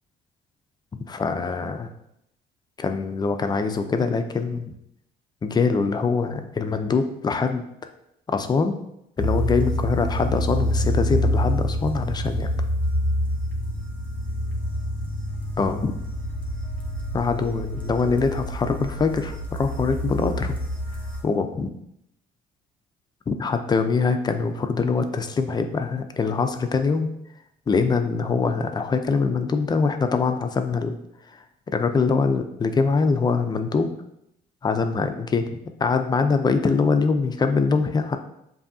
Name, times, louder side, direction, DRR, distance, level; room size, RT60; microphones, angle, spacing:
voice 1, 1.1-1.9 2.8-4.7 5.4-7.6 8.3-8.8 9.2-12.5 15.6-15.9 17.1-20.6 21.2-21.7 23.3-27.1 27.7-31.0 31.3-33.9 34.6-35.5 35.8-38.2, left 4 dB, 25° left, 7 dB, 0.4 m, -23 dB
sound 1, 9.2-21.2, equal, 10° left, 1.3 m, -27 dB
7.1 x 2.7 x 2.6 m, 0.80 s
cardioid pair, 110°, 17 cm